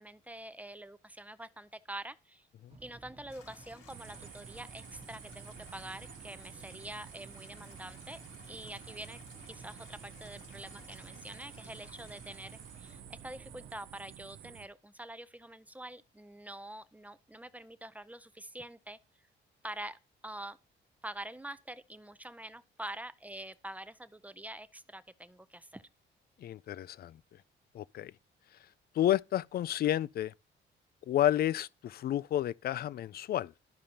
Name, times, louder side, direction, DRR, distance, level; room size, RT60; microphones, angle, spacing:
voice 1, 0.0-2.5 2.8-8.2 8.5-9.2 9.5-19.0 19.6-20.6 21.0-25.8, right 1 dB, 5° right, 0.5 m, -46 dB
sound 1, 2.7-13.7, right 3 dB, 30° right, 1.3 m, -55 dB
Stream, 3.3-13.0, left 6 dB, 85° left, 2.0 m, -58 dB
sound 2, 3.9-14.7, right 11 dB, 75° right, 0.6 m, -51 dB
voice 2, 26.4-27.2 27.7-28.1 29.0-30.3 31.1-33.5, left 12 dB, 50° left, 0.4 m, -30 dB
12.5 x 5.0 x 2.9 m
cardioid pair, 90°, 20 cm